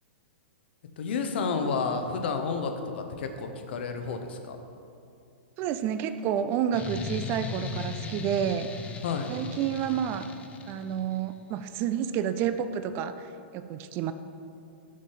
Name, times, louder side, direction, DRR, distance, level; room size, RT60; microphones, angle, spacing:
voice 1, 1.0-4.6 9.0-9.3, left 5 dB, 55° left, 6 dB, 0.8 m, -30 dB
voice 2, 5.6-8.7 9.3-10.3 10.7-13.3 13.5-14.1, right 9 dB, 35° right, 11 dB, 0.3 m, -29 dB
sound 1, 6.7-11.2, left 4 dB, 20° left, 0.6 m, -38 dB
6.4 x 5.3 x 5.7 m, 2.5 s
figure-of-eight pair, 105°, 7 cm